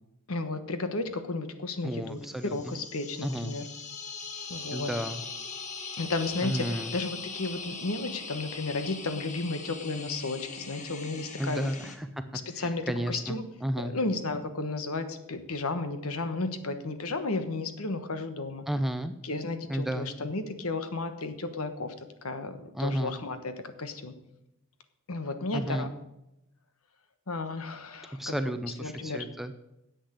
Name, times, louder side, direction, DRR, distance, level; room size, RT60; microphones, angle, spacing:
voice 1, 0.3-2.2 2.5-3.7 4.5-4.9 6.0-11.7 12.3-13.5 13.8-18.7 19.2-24.1 25.1-25.9 27.3-28.4 28.8-29.3, left 3 dB, 70° left, 9 dB, 1.2 m, -33 dB
voice 2, 1.8-2.7 3.2-3.6 4.7-5.2 6.4-6.9 11.4-12.1 12.6-13.9 18.7-19.1 19.7-20.1 22.7-23.2 25.5-25.9 28.2-29.5, right 1 dB, ahead, 9 dB, 0.5 m, -32 dB
sound 1, 2.2-12.0, left 4 dB, 30° left, 1.3 m, -41 dB
10.0 x 8.1 x 8.0 m, 0.89 s
head